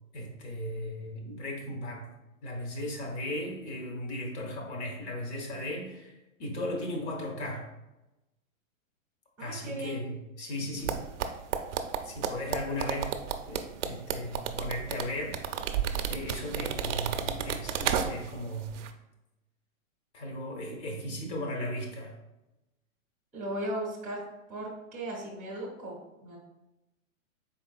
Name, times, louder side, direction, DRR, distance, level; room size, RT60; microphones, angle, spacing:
voice 1, 0.1-2.1 2.4-6.1 6.4-7.7 9.4-11.0 12.0-13.1 13.5-15.4 16.1-18.8 20.1-22.2, left 1 dB, 55° left, 1 dB, 1.1 m, -36 dB
voice 2, 9.4-10.0 23.3-24.2 24.5-26.4, right 1 dB, 5° right, -5 dB, 0.4 m, -37 dB
sound 1, 10.8-18.4 18.7-18.9, right 8 dB, 65° right, 0.5 m, -32 dB
4.2 x 3.4 x 2.3 m, 0.97 s
hypercardioid pair, 140°, 41 cm